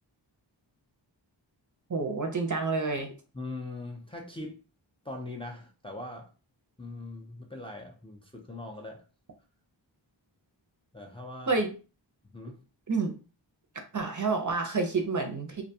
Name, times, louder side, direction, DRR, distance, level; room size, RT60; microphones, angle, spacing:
voice 1, 1.9-3.1 11.5-11.7 12.9-13.1 13.9-15.6, right 4 dB, 40° right, 4 dB, 0.5 m, -28 dB
voice 2, 3.3-4.6 5.0-6.3 6.8-9.0 10.9-11.6 12.2-12.6, left 2 dB, 10° left, 1 dB, 0.4 m, -41 dB
2.5 x 2.2 x 2.7 m, 0.34 s
wide cardioid pair, 65°, 47 cm